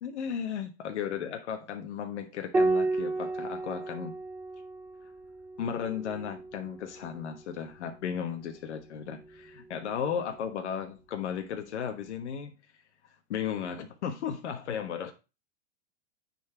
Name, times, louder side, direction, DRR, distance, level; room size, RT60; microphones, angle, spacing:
voice 1, 0.0-4.1 5.6-12.5 13.3-15.1, left 8 dB, 80° left, 1.4 m, -35 dB
Piano, 2.5-7.4 9.0-9.8, right 2 dB, 5° right, 0.3 m, -33 dB
9.5 x 4.5 x 4.4 m
supercardioid pair, 150°, 34 cm